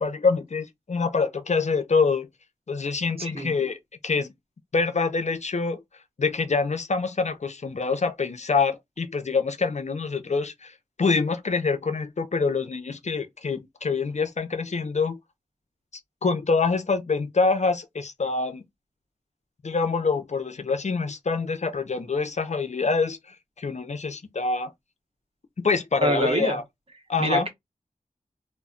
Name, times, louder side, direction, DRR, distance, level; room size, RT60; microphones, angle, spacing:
voice 1, 0.0-2.3 2.7-4.3 4.7-5.8 6.2-15.2 16.2-18.6 19.6-24.7 25.6-26.6 27.1-27.5, left 4 dB, 50° left, 0.5 m, -25 dB
voice 2, 3.2-3.5 26.0-26.6 27.2-27.5, right 1 dB, 40° right, 0.8 m, -25 dB
2.2 x 2.0 x 3.6 m
wide cardioid pair, 65°, 15 cm